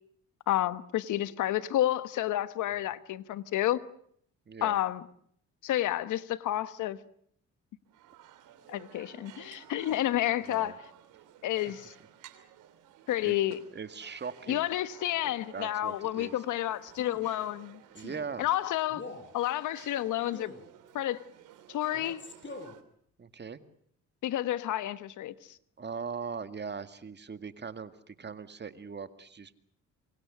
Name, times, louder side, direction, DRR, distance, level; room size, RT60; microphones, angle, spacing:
voice 1, 0.5-3.8 4.6-5.0 5.6-7.0 8.7-10.7 11.4-11.9 13.1-13.6 14.5-17.8 18.4-19.0 19.3-20.5 20.9-21.2 21.7-22.2 24.2-25.3, left 13 dB, 85° left, 1.3 m, -30 dB
voice 2, 4.5-4.8 10.4-10.8 13.2-13.4 13.7-14.7 15.5-16.4 17.9-18.5 23.2-23.6 25.8-29.6, right 5 dB, 35° right, 2.1 m, -40 dB
sound 1, 7.9-22.8, right 11 dB, 90° right, 3.1 m, -54 dB
Male speech man speaking, 16.9-17.3 17.9-18.2 18.9-19.3 20.3-20.7 21.9-22.8, left 3 dB, 40° left, 7.6 m, -44 dB
28.0 x 24.0 x 6.4 m
cardioid pair, 90°, 30 cm